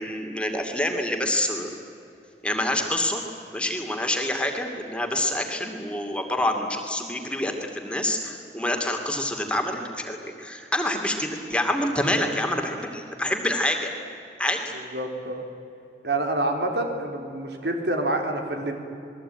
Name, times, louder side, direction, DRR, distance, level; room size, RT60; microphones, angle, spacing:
voice 1, 0.0-1.7 2.4-3.2 3.5-13.9 14.4-14.6, left 1 dB, 5° left, 3 dB, 2.5 m, -27 dB
voice 2, 14.9-15.4 16.0-18.8, right 2 dB, 75° right, 4 dB, 3.9 m, -27 dB
28.0 x 21.0 x 9.0 m, 2.7 s
head